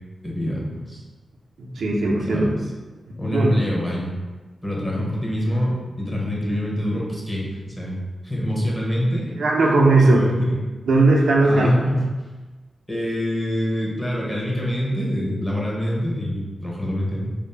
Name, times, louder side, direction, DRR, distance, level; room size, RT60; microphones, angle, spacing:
voice 1, 0.2-1.0 2.3-2.5 3.2-4.1 4.6-8.0 8.2-9.3 10.0-10.5 11.4-12.1 12.9-17.3, equal, 20° left, -4 dB, 0.8 m, -25 dB
voice 2, 1.6-2.5 3.3-3.5 9.4-10.2 10.9-11.7, right 2 dB, 85° right, -1 dB, 0.4 m, -17 dB
2.5 x 2.0 x 3.1 m, 1.3 s
cardioid pair, 65°, 0 cm